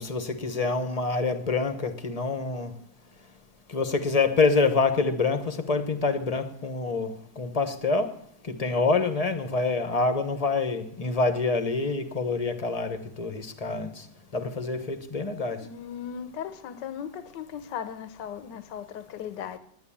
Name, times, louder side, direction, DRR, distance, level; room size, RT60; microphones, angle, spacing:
voice 1, 0.0-2.7 3.7-8.1 8.4-14.0 14.3-15.6, left 3 dB, 25° left, 0.9 m, -26 dB
voice 2, 15.6-19.6, left 8 dB, 80° left, 1.5 m, -37 dB
10.5 x 10.0 x 8.6 m
omnidirectional pair, 1.9 m